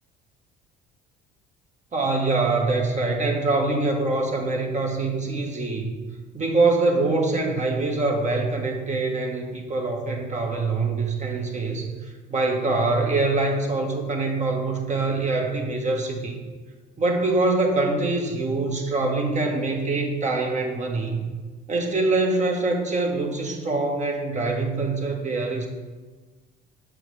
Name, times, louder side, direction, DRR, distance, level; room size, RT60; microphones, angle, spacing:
voice 1, 1.9-5.9 6.3-11.9 12.3-16.4 17.0-21.2 21.7-25.7, right 3 dB, 35° right, 2 dB, 1.4 m, -24 dB
7.6 x 6.2 x 3.4 m, 1.4 s
supercardioid pair, 85°, 21 cm